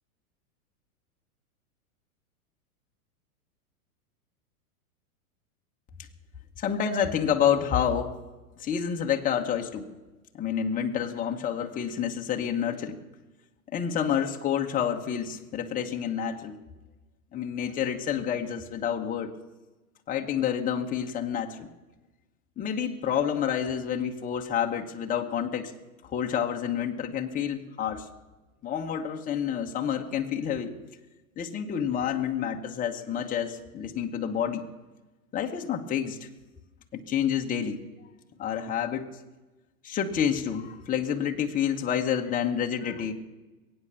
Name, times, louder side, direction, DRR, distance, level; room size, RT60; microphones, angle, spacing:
voice 1, 6.6-8.1 8.6-9.9 10.3-13.0 13.7-16.6 17.3-19.3 20.1-21.7 22.6-25.7 26.1-28.0 28.6-30.7 31.4-34.6 35.3-36.3 36.9-37.8 38.4-39.1 39.8-43.1, left 8 dB, 20° left, 2 dB, 1.2 m, -28 dB
22.0 x 8.9 x 6.9 m, 1.1 s
hypercardioid pair, 120°, 44 cm